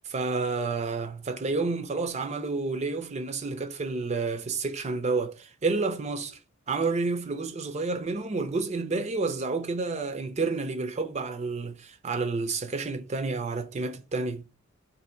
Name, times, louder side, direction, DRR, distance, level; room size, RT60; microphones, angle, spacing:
voice 1, 0.0-6.4 6.7-14.5, right 3 dB, 35° right, 0.5 m, -30 dB
2.9 x 2.6 x 4.3 m
head